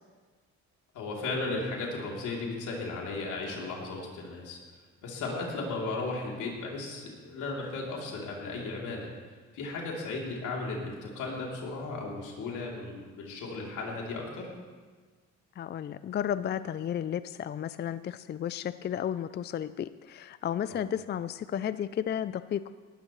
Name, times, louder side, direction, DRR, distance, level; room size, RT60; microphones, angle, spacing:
voice 1, 0.9-4.6 5.0-9.1 9.5-14.5 20.7-20.8, left 3 dB, 85° left, -2 dB, 3.1 m, -35 dB
voice 2, 15.6-22.6, left 9 dB, 35° left, 14 dB, 0.4 m, -33 dB
18.5 x 12.5 x 3.1 m, 1.5 s
cardioid pair, 90°, 30 cm